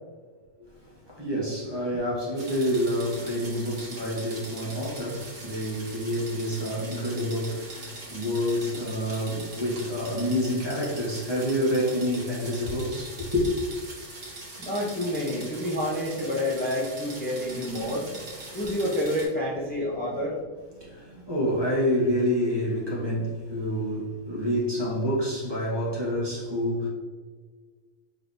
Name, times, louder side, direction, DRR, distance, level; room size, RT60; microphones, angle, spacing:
voice 1, 1.1-13.5 17.8-18.0 18.5-18.6 20.8-26.9, equal, 20° right, -5 dB, 1.0 m, -28 dB
sound 1, 2.4-19.3, right 2 dB, 65° right, 1.6 m, -42 dB
voice 2, 14.6-18.1 18.5-20.3, left 1 dB, 15° left, -6 dB, 0.4 m, -28 dB
5.0 x 3.2 x 2.6 m, 1.5 s
omnidirectional pair, 1.5 m